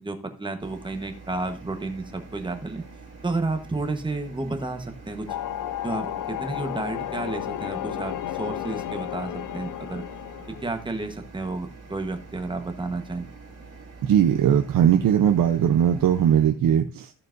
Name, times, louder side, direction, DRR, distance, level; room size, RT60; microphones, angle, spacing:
voice 1, 0.0-2.8 3.2-5.3 5.8-10.0 10.6-13.3, right 2 dB, 15° right, 6 dB, 1.1 m, -31 dB
sound 1, 0.6-16.5, right 3 dB, 45° right, 2.8 m, -46 dB
sound 2, 5.3-10.7, left 12 dB, 70° left, 0.5 m, -32 dB
voice 2, 14.0-17.1, right 9 dB, 85° right, 6 dB, 0.7 m, -19 dB
14.0 x 6.7 x 2.5 m, 0.34 s
wide cardioid pair, 155°, 33 cm